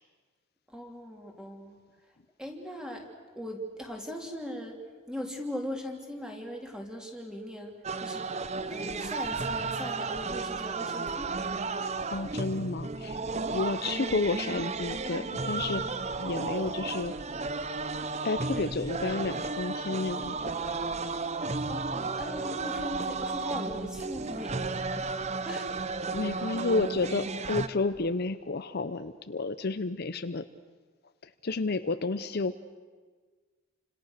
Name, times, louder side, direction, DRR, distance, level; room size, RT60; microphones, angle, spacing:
voice 1, 0.7-1.8 2.4-3.1 3.4-4.8 5.1-11.6 21.7-25.9 26.3-26.5, equal, 5° right, 1 dB, 3.4 m, -40 dB
sound 1, 7.8-27.7, right 3 dB, 30° right, 0.8 m, -33 dB
voice 2, 12.1-13.2 13.5-17.1 18.2-20.5 26.1-30.4 31.2-32.6, left 3 dB, 50° left, 10 dB, 0.7 m, -31 dB
29.5 x 26.0 x 6.6 m, 1.5 s
head